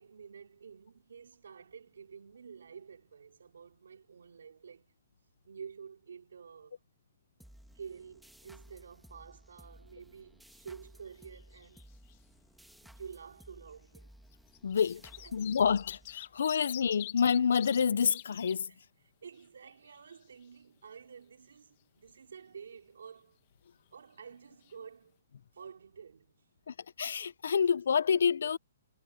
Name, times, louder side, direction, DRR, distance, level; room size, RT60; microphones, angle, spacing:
voice 1, 0.0-4.9 5.4-6.8 7.7-11.8 12.8-14.1 15.2-15.5 16.3-16.7 18.7-23.4 23.9-25.2 25.5-26.3, right 6 dB, 85° right, 4.3 m, -50 dB
sound 1, 7.4-16.6, right 1 dB, ahead, 1.6 m, -57 dB
sound 2, 11.1-11.8 12.1-12.2 13.3-13.4 14.3-18.6 19.0-19.1 19.4-20.4 24.3-24.4 24.6-24.7, left 16 dB, 30° left, 1.6 m, -46 dB
voice 2, 14.6-15.0 15.3-18.7 26.7-28.6, left 7 dB, 70° left, 0.5 m, -28 dB
hypercardioid pair, 170°, 0 cm